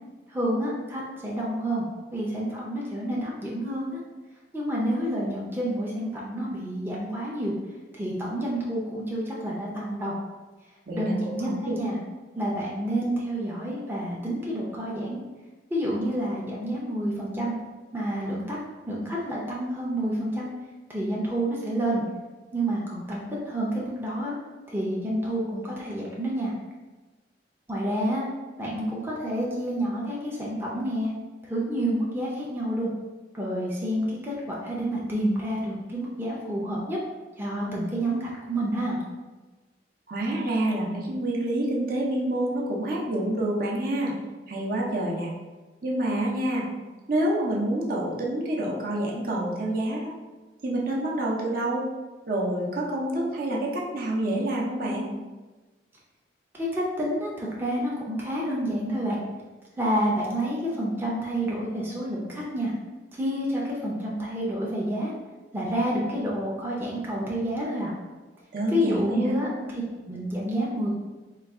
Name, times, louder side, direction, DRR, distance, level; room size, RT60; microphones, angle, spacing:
voice 1, 0.3-1.9 2.1-3.9 4.5-7.5 7.9-10.2 10.9-12.0 12.3-15.2 15.7-17.5 17.9-18.6 18.9-20.5 20.9-22.0 22.5-24.3 24.7-26.5 27.7-28.3 28.6-31.1 31.4-32.9 33.3-37.0 37.4-39.0 56.5-59.2 59.8-62.7 63.2-65.1 65.5-67.9 68.7-69.5 69.7-70.9, right 1 dB, 10° right, -5 dB, 0.5 m, -29 dB
voice 2, 10.9-11.7 40.1-44.1 44.5-45.3 45.8-46.6 47.1-50.1 50.6-51.8 52.3-55.1 68.5-69.3, right 1 dB, 55° right, -3 dB, 0.7 m, -27 dB
3.9 x 2.3 x 3.5 m, 1.2 s
head